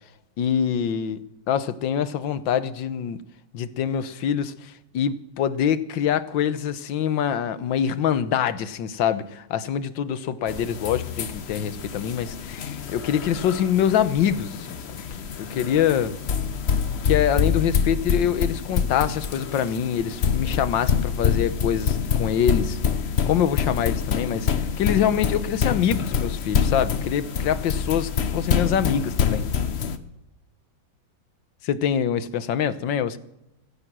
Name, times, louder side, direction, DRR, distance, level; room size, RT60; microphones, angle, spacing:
voice 1, 0.4-1.2 1.5-3.2 3.5-15.0 15.4-16.1 17.0-22.8 23.2-29.5 31.6-33.2, left 9 dB, 70° left, 13 dB, 1.6 m, -25 dB
sound 1, 10.5-30.0, left 7 dB, 45° left, 0.9 m, -26 dB
16.5 x 14.0 x 6.1 m, 0.87 s
omnidirectional pair, 2.2 m